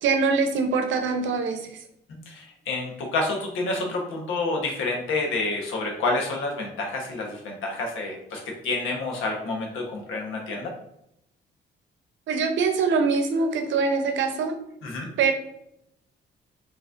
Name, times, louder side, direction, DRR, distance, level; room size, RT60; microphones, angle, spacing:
voice 1, 0.0-1.8 12.3-14.6 15.2-15.3, right 4 dB, 75° right, 6 dB, 0.7 m, -23 dB
voice 2, 2.3-10.7 14.8-15.1, left 2 dB, 85° left, 0 dB, 1.1 m, -29 dB
4.9 x 3.1 x 2.5 m, 0.78 s
cardioid pair, 90°, 20 cm